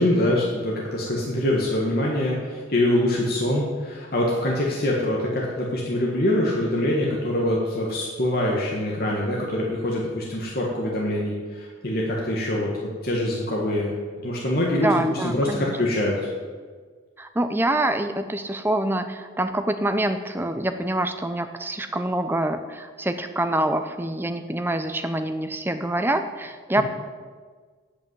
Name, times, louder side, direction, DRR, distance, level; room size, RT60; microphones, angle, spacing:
voice 1, 0.0-16.3 26.8-26.9, left 1 dB, 50° left, -3 dB, 1.6 m, -24 dB
voice 2, 14.8-15.8 17.2-26.8, right 1 dB, 10° right, 9 dB, 0.5 m, -26 dB
8.5 x 8.4 x 8.0 m, 1.5 s
head